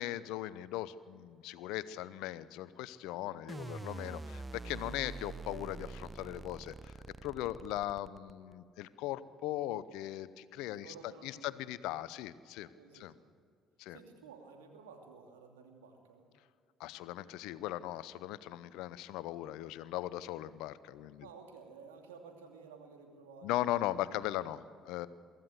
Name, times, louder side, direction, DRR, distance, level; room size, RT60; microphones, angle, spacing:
voice 1, 0.0-6.9 7.2-10.9 11.2-12.7 12.9-13.1 13.8-14.0 16.8-21.3 23.4-25.1, left 14 dB, 70° left, 16 dB, 0.7 m, -39 dB
sound 1, 3.5-8.5, right 3 dB, 25° right, 0.7 m, -45 dB
voice 2, 10.7-11.6 12.7-13.3 13.9-16.3 21.2-23.7 24.9-25.1, right 5 dB, 85° right, 2 dB, 2.7 m, -54 dB
24.0 x 15.0 x 8.0 m, 2.2 s
hypercardioid pair, 55°, 0 cm